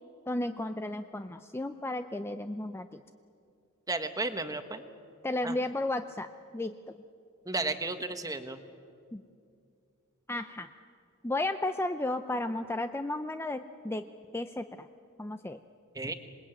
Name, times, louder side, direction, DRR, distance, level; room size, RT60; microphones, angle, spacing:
voice 1, 0.3-3.0 5.2-6.3 6.5-6.8 9.1-9.2 10.3-10.7 11.2-14.1 14.3-14.9 15.2-15.6, left 2 dB, 10° left, 8 dB, 0.6 m, -33 dB
voice 2, 3.9-4.8 5.4-5.6 7.4-8.6 15.9-16.1, right 3 dB, 15° right, 8 dB, 1.3 m, -33 dB
26.5 x 20.5 x 9.1 m, 2.4 s
head